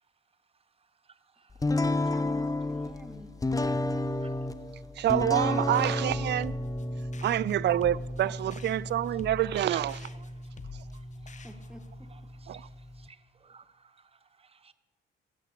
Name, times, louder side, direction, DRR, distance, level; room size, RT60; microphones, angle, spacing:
sound 1, 1.6-13.1, left 2 dB, 15° left, 1.0 m, -32 dB
voice 1, 2.1-3.3 8.2-8.5 11.4-12.1, equal, 5° right, 1.8 m, -48 dB
voice 2, 5.0-6.5 7.2-10.0 12.5-12.6, right 12 dB, 60° right, 0.4 m, -27 dB
sound 2, 5.7-11.9, left 6 dB, 35° left, 1.2 m, -48 dB
voice 3, 13.0-13.9 14.4-14.7, right 5 dB, 30° right, 1.1 m, -48 dB
13.0 x 12.5 x 8.5 m
cardioid pair, 90°, 20 cm